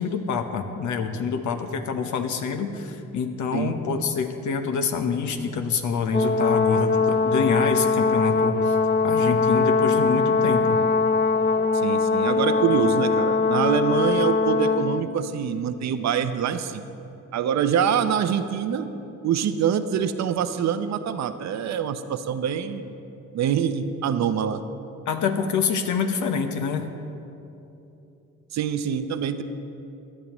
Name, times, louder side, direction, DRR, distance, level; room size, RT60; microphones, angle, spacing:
voice 1, 0.0-8.8 9.0-10.8 25.1-26.9, left 5 dB, 75° left, 6 dB, 1.1 m, -26 dB
Brass instrument, 6.1-15.1, left 4 dB, 35° left, 0.7 m, -21 dB
voice 2, 11.7-16.8 17.3-18.9 19.2-22.9 23.3-24.6 28.5-29.4, right 8 dB, 65° right, 10 dB, 0.7 m, -25 dB
17.5 x 11.5 x 3.1 m, 2.9 s
cardioid pair, 90°, 30 cm